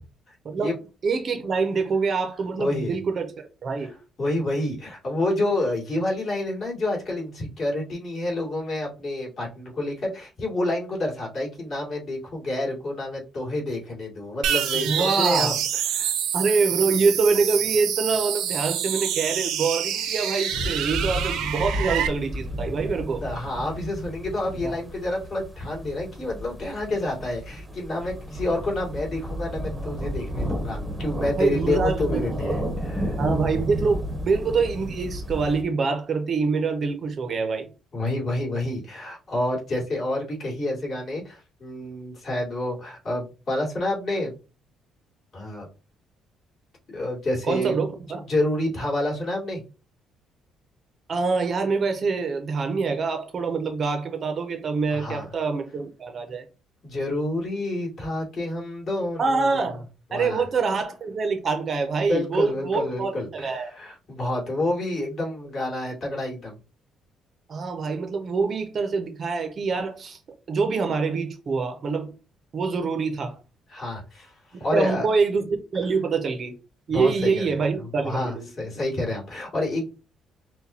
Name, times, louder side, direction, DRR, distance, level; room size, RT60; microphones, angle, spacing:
voice 1, 0.3-0.7 2.6-3.0 4.2-15.6 15.9-16.1 23.2-33.2 37.9-44.3 45.3-45.7 46.9-47.8 48.3-49.6 54.9-55.3 56.8-59.8 60.1-60.4 62.1-66.6 73.7-75.1 76.9-77.5 77.8-79.8, left 1 dB, 40° left, 2.3 m, -28 dB
voice 2, 1.0-3.9 14.9-15.6 16.3-23.2 24.6-24.8 31.4-32.2 33.2-37.7 47.5-48.2 51.1-56.4 59.2-63.7 67.5-70.2 70.5-72.1 72.5-73.4 74.7-76.5 76.9-78.5, right 4 dB, 40° right, 0.6 m, -25 dB
sound 1, 14.4-22.1, right 9 dB, 90° right, 0.6 m, -27 dB
sound 2, 20.5-35.6, equal, 10° right, 0.8 m, -32 dB
5.9 x 2.2 x 2.7 m
cardioid pair, 140°, 0 cm